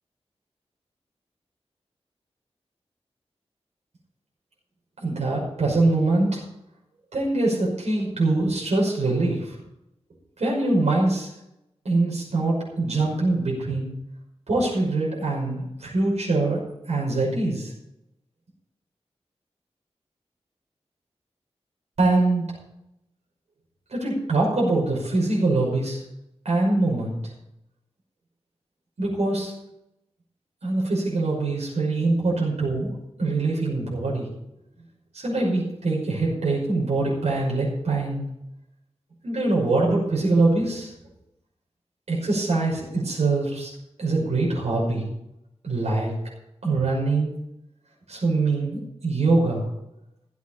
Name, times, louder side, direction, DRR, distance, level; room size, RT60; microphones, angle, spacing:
voice 1, 5.0-6.4 7.1-9.6 10.4-11.3 11.8-13.9 14.5-16.6 16.9-17.7 22.0-22.5 23.9-26.0 26.4-27.2 29.0-29.5 30.6-32.9 33.2-34.3 35.1-38.2 39.2-40.9 42.1-43.7 44.0-45.0 45.6-46.1 46.6-47.3 48.1-49.6, right 2 dB, 80° right, -4 dB, 5.7 m, -23 dB
15.0 x 8.3 x 5.9 m, 0.83 s
wide cardioid pair, 95°, 11 cm